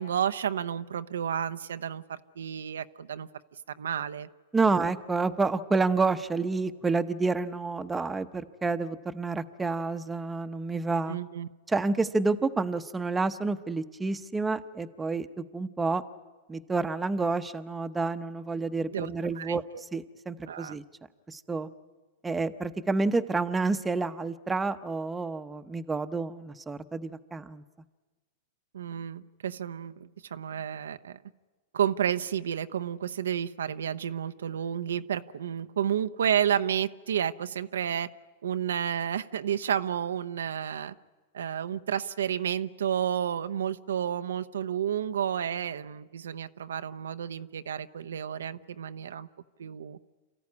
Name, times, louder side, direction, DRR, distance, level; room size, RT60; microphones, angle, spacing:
voice 1, 0.0-3.3 3.7-4.3 11.1-11.5 18.9-19.6 20.5-20.8 28.7-31.2 31.7-38.1 38.4-40.9 41.3-49.3 49.6-50.0, right 9 dB, 90° right, 10 dB, 0.7 m, -31 dB
voice 2, 4.5-11.2 11.7-16.0 16.5-20.8 21.3-21.7 22.2-27.6, right 3 dB, 10° right, 8 dB, 0.8 m, -29 dB
27.5 x 14.0 x 9.7 m, 1.3 s
hypercardioid pair, 130°, 0 cm